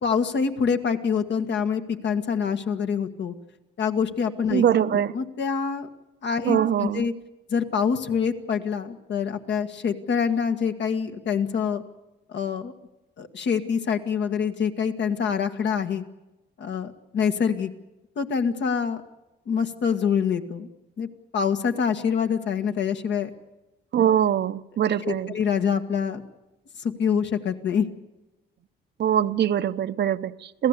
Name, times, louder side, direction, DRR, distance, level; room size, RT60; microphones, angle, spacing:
voice 1, 0.0-3.3 3.8-4.6 4.9-5.9 6.2-7.1 7.5-11.8 12.3-12.7 13.2-16.0 16.6-17.7 18.2-19.0 19.5-20.7 21.0-21.1 21.3-23.3 24.0-24.1 25.0-26.2 26.8-27.9, left 6 dB, 65° left, 1.8 m, -25 dB
voice 2, 4.5-5.2 6.4-7.1 23.9-25.3 29.0-30.7, right 9 dB, 60° right, 0.8 m, -23 dB
27.0 x 16.0 x 8.2 m
cardioid pair, 90°, 20 cm